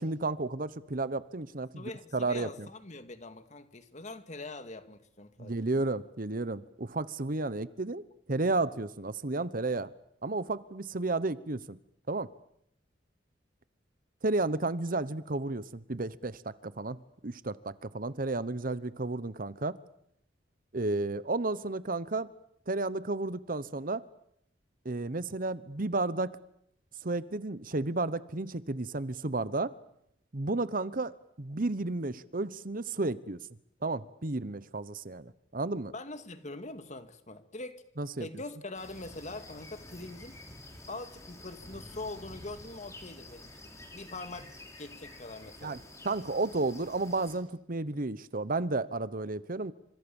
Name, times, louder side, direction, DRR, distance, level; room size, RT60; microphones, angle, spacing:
voice 1, 0.0-2.5 5.4-8.0 8.3-9.9 10.2-11.8 12.1-12.3 14.2-19.8 20.7-22.3 22.7-24.0 24.8-26.3 27.0-29.7 30.3-33.4 33.8-35.9 38.0-38.3 45.6-45.8 46.0-49.7, right 2 dB, 50° right, 16 dB, 1.1 m, -32 dB
voice 2, 1.7-5.6 35.9-37.8 38.2-40.4 40.9-44.5 44.8-45.8, left 2 dB, 40° left, 9 dB, 2.3 m, -43 dB
sound 1, 38.7-47.4, left 1 dB, 15° left, 5.9 m, -49 dB
30.0 x 26.5 x 7.2 m, 0.73 s
head